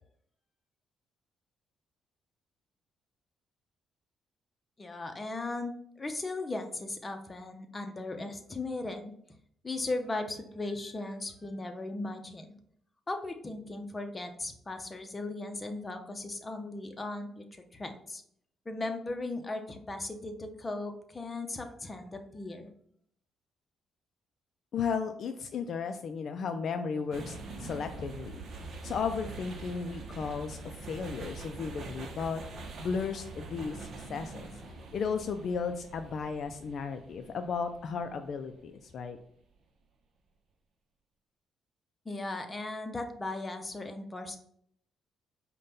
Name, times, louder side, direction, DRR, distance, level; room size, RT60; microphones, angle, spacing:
voice 1, 4.8-9.1 9.6-12.6 13.1-18.2 18.7-22.7 42.1-44.4, left 2 dB, 25° left, 5 dB, 0.6 m, -37 dB
voice 2, 24.7-30.6 30.9-34.5 34.9-39.2, left 5 dB, 60° left, 7 dB, 0.3 m, -35 dB
sound 1, 27.1-39.2, right 3 dB, 55° right, 0.7 m, -44 dB
5.2 x 2.2 x 3.9 m, 0.67 s
cardioid pair, 90°, 0 cm